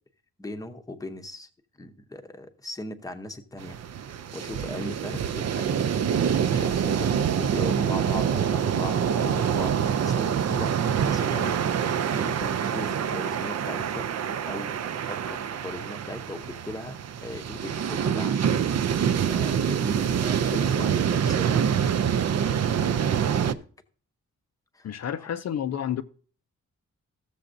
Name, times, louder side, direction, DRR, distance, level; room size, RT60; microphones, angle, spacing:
voice 1, 0.4-1.5 1.8-3.8 4.3-11.6 12.1-14.1 14.4-18.4 18.9-21.8 22.5-23.6 24.7-24.9, left 2 dB, 10° left, 0.7 m, -39 dB
sound 1, 3.6-23.5, right 8 dB, 60° right, 0.5 m, -26 dB
voice 2, 24.8-26.0, left 9 dB, 60° left, 0.4 m, -30 dB
14.5 x 7.0 x 2.6 m
wide cardioid pair, 140°, 29 cm